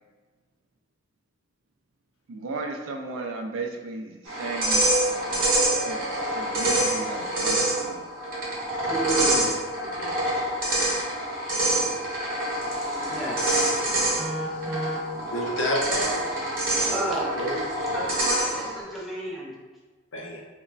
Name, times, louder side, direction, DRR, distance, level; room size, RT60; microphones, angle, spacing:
voice 1, 2.3-5.5 5.8-8.1 9.0-9.5, right 3 dB, 80° right, 2 dB, 0.4 m, -36 dB
sound 1, 4.3-18.8, right 1 dB, 50° right, 0.8 m, -26 dB
voice 2, 8.9-9.6 13.1-13.4 14.1-15.0 16.7-17.3 17.9-19.5, equal, ahead, -7 dB, 0.6 m, -32 dB
voice 3, 9.8-10.1 15.3-16.2 16.8-17.0 17.4-17.5 20.1-20.4, equal, 70° left, -2 dB, 0.6 m, -29 dB
3.0 x 2.1 x 2.4 m, 1.3 s
head